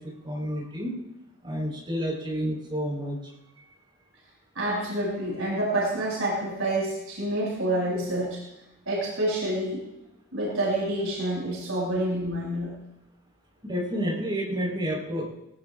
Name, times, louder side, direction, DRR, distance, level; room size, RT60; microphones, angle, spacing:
voice 1, 0.2-0.9 1.4-3.2 13.6-15.3, equal, 25° right, -4 dB, 4.6 m, -29 dB
voice 2, 4.5-8.4 8.8-9.8 10.3-12.7, right 1 dB, 85° right, -5 dB, 6.7 m, -28 dB
20.0 x 18.5 x 2.6 m, 0.88 s
head